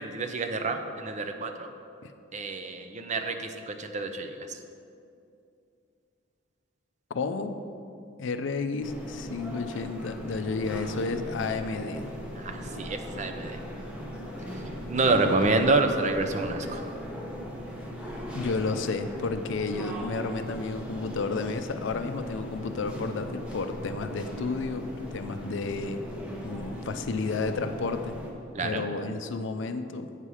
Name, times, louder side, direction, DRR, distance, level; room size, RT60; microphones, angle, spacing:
voice 1, 0.0-1.7 2.3-4.6 12.4-13.6 14.9-16.8 28.5-28.9, right 3 dB, 40° right, 6 dB, 0.5 m, -28 dB
voice 2, 7.1-7.6 8.2-12.1 15.2-15.5 18.3-26.0 26.4-28.2 28.6-30.1, left 4 dB, 65° left, 9 dB, 0.5 m, -32 dB
sound 1, 8.8-28.3, equal, 5° right, 1.0 m, -38 dB
8.2 x 5.6 x 4.8 m, 2.5 s
head